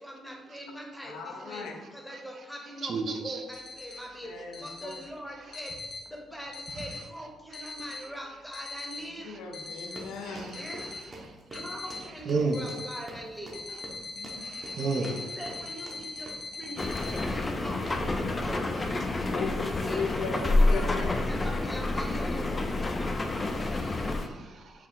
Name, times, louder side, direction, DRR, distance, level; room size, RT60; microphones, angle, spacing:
voice 1, 0.0-4.3 4.6-5.7 6.1-9.3 10.5-10.9 11.5-13.6 15.0-18.9 19.2-20.0 20.3-22.5, equal, ahead, 0 dB, 0.8 m, -42 dB
voice 2, 1.0-1.8 4.2-5.0 9.2-10.6 14.1-14.4 19.3-21.2, left 4 dB, 85° left, 3 dB, 0.5 m, -37 dB
voice 3, 2.8-3.4 10.2-10.6 12.3-12.6 14.4-15.1 23.4-24.7, right 4 dB, 55° right, 4 dB, 0.5 m, -32 dB
sound 1, 3.5-4.0 4.5-5.0 5.5-6.0 6.5-7.0 7.5-8.0 8.5-9.0 9.5-10.0 10.5-11.0 11.5-12.0 12.5-13.0 13.5-17.2, left 3 dB, 55° left, 0.8 m, -40 dB
sound 2, 9.9-18.1 18.5-18.8 19.2-19.4, right 1 dB, 30° right, 0.8 m, -47 dB
sound 3, 16.8-24.3, left 2 dB, 25° left, 0.4 m, -28 dB
4.5 x 2.4 x 3.7 m, 1.2 s
cardioid pair, 90°, 0 cm